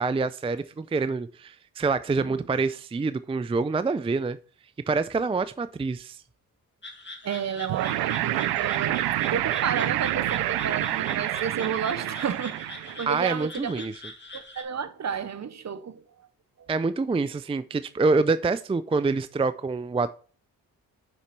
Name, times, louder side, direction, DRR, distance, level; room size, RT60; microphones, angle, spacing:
voice 1, 0.0-4.4 4.9-6.2 13.1-13.9 16.7-20.1, right 4 dB, 15° right, 0.4 m, -26 dB
sound 1, 6.8-14.6, left 2 dB, 30° left, 2.0 m, -43 dB
voice 2, 7.2-9.0 9.3-13.8 14.3-16.0, right 7 dB, 45° right, 0.9 m, -32 dB
sound 2, 7.7-13.1, right 15 dB, 85° right, 0.5 m, -28 dB
6.2 x 5.7 x 4.6 m
supercardioid pair, 45°, 38 cm